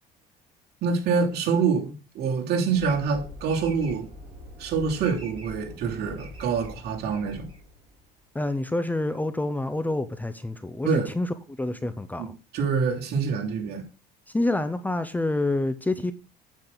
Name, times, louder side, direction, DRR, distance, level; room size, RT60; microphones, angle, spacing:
voice 1, 0.8-4.1 4.6-7.5 10.8-11.1 12.2-12.3 12.5-13.8, right 5 dB, 60° right, 3.1 m, -26 dB
sound 1, 2.7-8.1, equal, 30° right, 4.6 m, -43 dB
voice 2, 8.3-12.3 14.3-16.1, left 2 dB, 10° left, 0.7 m, -27 dB
9.1 x 8.5 x 3.9 m
cardioid pair, 110°, 18 cm